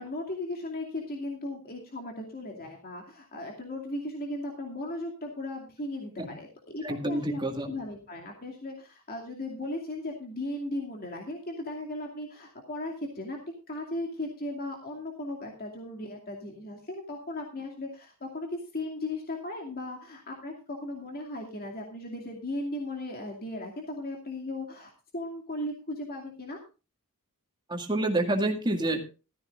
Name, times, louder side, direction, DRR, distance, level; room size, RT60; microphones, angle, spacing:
voice 1, 0.0-7.4 7.7-13.4 13.7-26.6, left 1 dB, 45° left, 1 dB, 2.5 m, -37 dB
voice 2, 6.8-7.7 27.7-29.1, right 1 dB, 20° right, 4 dB, 2.0 m, -28 dB
15.0 x 13.5 x 2.5 m, 0.31 s
head